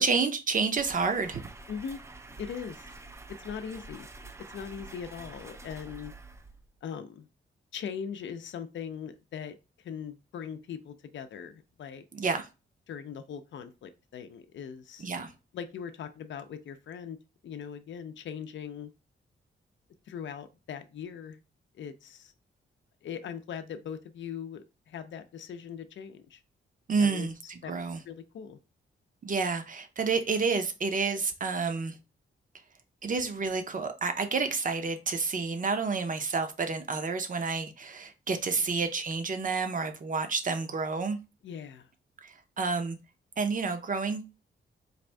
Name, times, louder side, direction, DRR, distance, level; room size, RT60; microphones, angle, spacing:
voice 1, 0.0-1.4 12.1-12.5 15.0-15.3 26.9-28.0 29.2-32.0 33.0-41.2 42.2-43.0 43.4-44.2, right 4 dB, 40° right, 0.7 m, -29 dB
sound 1, 0.8-6.8, right 2 dB, 15° right, 0.3 m, -47 dB
voice 2, 1.7-2.0 2.4-2.9 3.4-4.1 4.5-6.1 6.8-7.3 7.7-9.6 9.8-12.0 12.9-15.1 15.5-17.2 17.4-18.9 20.1-21.4 21.8-22.3 23.0-26.4 27.0-27.3 27.6-28.6 38.7-38.8 41.4-41.9, left 7 dB, 70° left, 0.5 m, -40 dB
4.1 x 2.6 x 3.3 m
wide cardioid pair, 115°, 20 cm